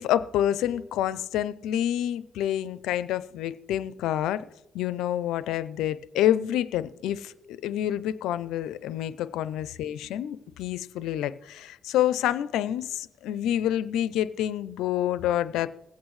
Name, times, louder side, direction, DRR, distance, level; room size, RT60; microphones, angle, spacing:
voice 1, 0.0-4.4 4.7-15.7, left 11 dB, 90° left, 0.4 m, -28 dB
20.5 x 8.2 x 3.2 m
cardioid pair, 90°, 0 cm